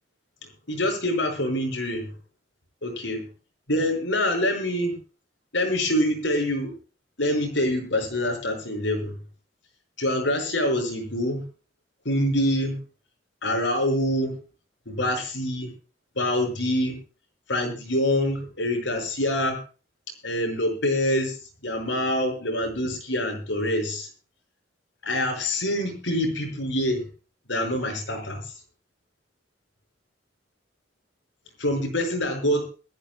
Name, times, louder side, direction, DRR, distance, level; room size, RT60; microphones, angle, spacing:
voice 1, 0.4-2.1 2.8-3.2 3.7-4.9 5.5-6.7 7.2-9.1 10.0-11.4 12.0-12.8 13.4-14.3 14.9-15.7 16.2-17.0 17.5-19.6 20.2-21.4 21.6-24.1 25.0-27.1 27.5-28.5 31.6-32.6, left 1 dB, 75° left, 4 dB, 5.8 m, -25 dB
22.5 x 14.5 x 2.3 m, 0.36 s
head